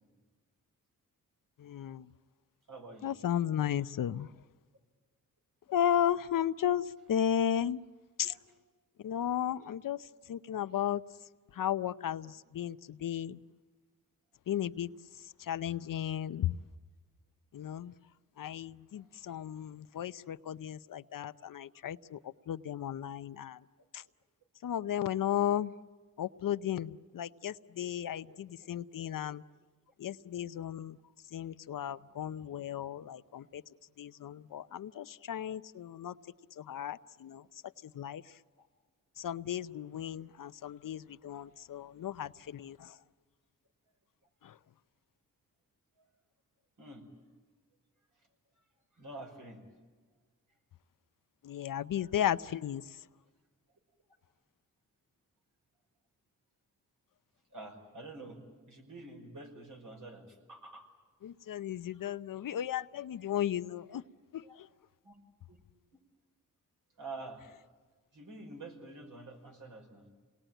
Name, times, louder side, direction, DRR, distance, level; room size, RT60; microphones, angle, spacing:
voice 1, 1.6-2.1 3.0-4.3 5.7-7.8 8.2-8.3 9.0-10.0 10.3-11.0 11.5-13.4 14.5-14.9 15.4-16.6 17.5-17.9 18.4-22.2 22.5-23.6 23.9-24.0 24.6-25.7 26.2-29.4 30.0-31.0 31.3-33.6 34.0-36.1 36.6-37.4 37.9-38.2 39.2-42.9 44.4-44.5 51.4-52.8 61.2-64.0 64.3-64.7, left 10 dB, 70° left, 13 dB, 0.7 m, -34 dB
voice 2, 2.7-3.1 8.2-8.4 19.0-19.1 28.0-28.7 31.9-32.3 38.6-38.7 41.2-41.3 46.0-46.1 46.8-47.1 49.0-49.6 57.5-60.9 64.4-64.6 65.0-65.2 65.5-65.6 67.0-67.5 68.1-70.1, right 2 dB, 65° right, 3 dB, 5.5 m, -48 dB
28.0 x 20.0 x 9.1 m, 1.4 s
cardioid pair, 90°, 34 cm